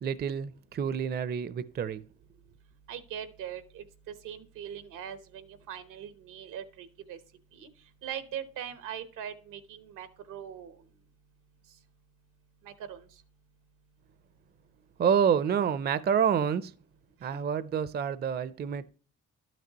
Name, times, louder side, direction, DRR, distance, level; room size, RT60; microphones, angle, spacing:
voice 1, 0.0-2.0 15.0-16.7 17.2-18.9, right 7 dB, 35° right, 0.5 m, -28 dB
voice 2, 2.9-7.2 7.5-7.7 8.0-10.8 12.6-13.1, right 9 dB, 90° right, 1.0 m, -41 dB
12.0 x 6.0 x 2.9 m
cardioid pair, 90°, 30 cm